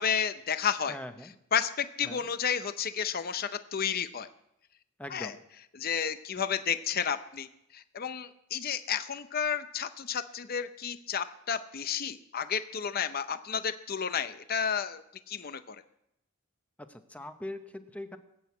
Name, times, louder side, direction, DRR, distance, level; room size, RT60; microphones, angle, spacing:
voice 1, 0.0-1.0 1.5-4.3 5.1-5.3 5.7-15.8, left 7 dB, 45° left, 11 dB, 0.6 m, -32 dB
voice 2, 0.9-1.3 2.0-2.3 5.0-5.4 16.8-18.2, left 1 dB, 5° left, 8 dB, 0.9 m, -41 dB
19.0 x 7.9 x 8.4 m, 0.81 s
head